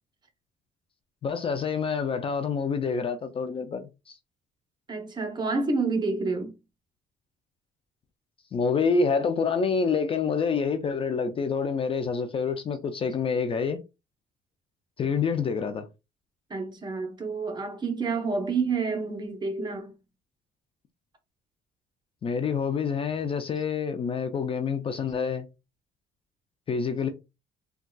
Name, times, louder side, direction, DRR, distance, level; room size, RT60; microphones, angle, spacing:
voice 1, 1.2-4.2 8.5-13.8 15.0-15.9 22.2-25.5 26.7-27.1, left 5 dB, 35° left, 0.4 m, -27 dB
voice 2, 4.9-6.6 16.5-19.9, right 4 dB, 25° right, 0.8 m, -29 dB
3.7 x 2.3 x 2.2 m
cardioid pair, 110°, 17 cm